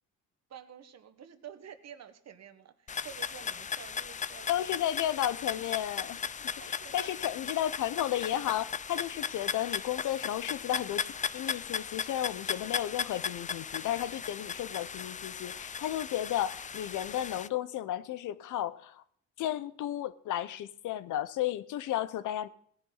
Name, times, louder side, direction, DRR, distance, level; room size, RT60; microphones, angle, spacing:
voice 1, 0.5-4.7 6.4-7.2, right 9 dB, 60° right, 10 dB, 1.5 m, -50 dB
sound 1, 2.9-17.5, left 7 dB, 25° left, 0.4 m, -37 dB
voice 2, 4.5-6.3 6.7-19.0 19.4-22.5, left 12 dB, 80° left, 15 dB, 0.9 m, -33 dB
18.0 x 10.5 x 4.0 m, 0.63 s
cardioid pair, 90°, 30 cm